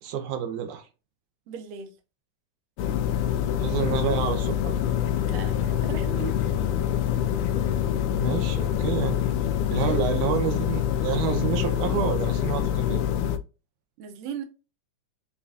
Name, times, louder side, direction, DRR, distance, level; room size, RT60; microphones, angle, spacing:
voice 1, 0.0-0.9 3.6-4.7 8.1-9.2 9.7-13.0, right 8 dB, 85° right, 2.2 m, -29 dB
voice 2, 1.5-1.9 5.3-6.4 9.7-10.3 14.0-14.4, right 7 dB, 70° right, 1.8 m, -37 dB
sound 1, 2.8-13.4, left 10 dB, 90° left, 2.1 m, -26 dB
sound 2, 3.5-11.3, left 8 dB, 70° left, 1.8 m, -38 dB
7.1 x 2.4 x 2.6 m
omnidirectional pair, 3.5 m